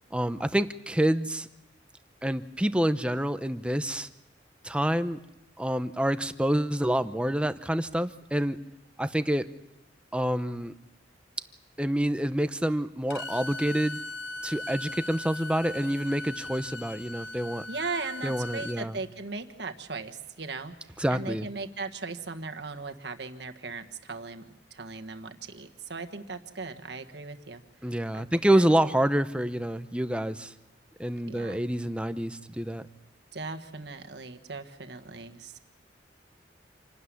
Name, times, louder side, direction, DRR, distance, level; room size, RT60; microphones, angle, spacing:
voice 1, 0.1-1.5 2.2-4.1 4.6-5.2 5.6-8.6 9.0-9.5 10.1-10.7 11.8-14.0 14.4-17.6 18.2-19.0 21.0-21.5 27.8-30.5 31.0-32.9, right 1 dB, 5° right, 11 dB, 0.7 m, -27 dB
Bowed string instrument, 13.1-18.8, left 2 dB, 65° left, 1.1 m, -39 dB
voice 2, 17.7-28.6 31.3-31.6 33.3-35.6, right 4 dB, 65° right, 6 dB, 1.5 m, -38 dB
27.5 x 12.5 x 9.8 m, 0.94 s
head